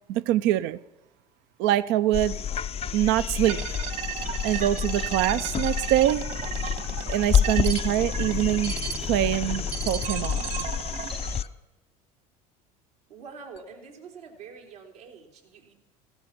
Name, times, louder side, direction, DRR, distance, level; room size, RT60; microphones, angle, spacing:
voice 1, 0.1-0.8 1.6-2.4 2.9-3.6 4.4-6.2 7.1-8.8 9.1-10.6, right 13 dB, 65° right, 0.6 m, -24 dB
sound 1, 2.1-11.5 13.6-13.7, left 8 dB, 30° left, 0.5 m, -29 dB
sound 2, 3.4-11.4, right 9 dB, 50° right, 1.6 m, -35 dB
voice 2, 13.1-15.7, right 5 dB, 85° right, 3.5 m, -45 dB
16.0 x 13.0 x 5.9 m
hypercardioid pair, 80°, 20 cm